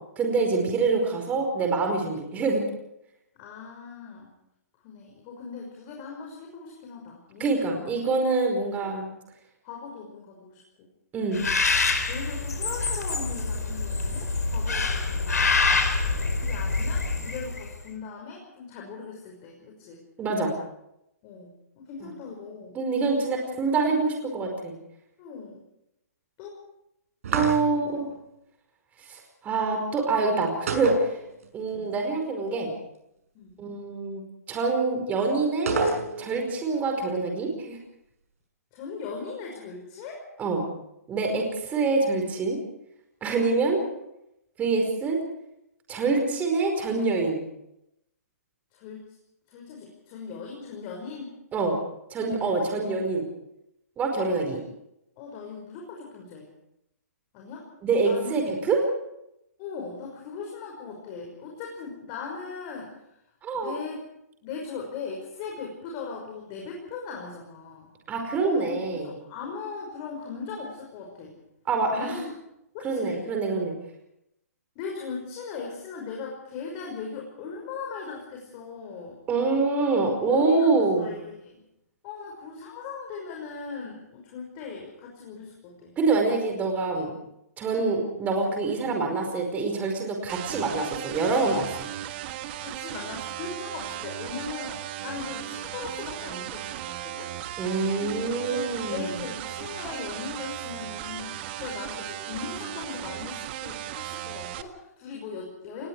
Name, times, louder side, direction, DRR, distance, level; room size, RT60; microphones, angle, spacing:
voice 1, 0.2-2.6 7.4-9.1 11.1-11.4 20.2-20.5 22.0-22.1 22.7-24.7 27.3-28.1 29.0-31.2 31.5-32.7 33.6-34.2 34.5-35.7 36.2-37.8 40.4-40.7 41.1-42.6 43.2-43.8 44.6-45.2 45.9-47.4 51.5-51.8 52.1-53.3 54.0-54.6 57.8-58.8 63.4-63.7 68.1-69.1 71.7-72.2 72.8-73.7 79.3-81.1 86.0-87.1 87.6-91.7 97.6-99.2, right 3 dB, 20° right, 3 dB, 5.0 m, -25 dB
voice 2, 3.4-4.3 4.8-7.9 8.8-8.9 9.6-10.9 12.1-15.5 16.3-20.0 21.2-22.8 25.2-25.6 26.4-26.6 27.7-27.8 31.6-31.9 33.3-33.5 38.7-40.3 43.7-44.0 48.7-49.0 49.5-51.4 52.4-52.6 55.2-56.5 57.3-57.7 58.0-58.4 59.6-62.9 63.5-64.0 64.4-67.9 68.5-71.4 72.0-72.3 72.7-73.2 74.8-79.2 80.3-81.6 82.0-86.0 87.7-87.9 92.6-97.3 97.9-105.9, left 5 dB, 35° left, 0 dB, 5.7 m, -39 dB
Bird, 11.3-17.7, left 3 dB, 85° left, 4.5 m, -26 dB
sound 1, 27.2-28.0 30.7-31.7 32.0-32.1 35.7-36.5, right 3 dB, 60° right, 6.2 m, -28 dB
sound 2, 90.3-104.6, right 13 dB, 40° right, 1.6 m, -36 dB
28.0 x 20.5 x 4.8 m, 0.82 s
hypercardioid pair, 140°, 9 cm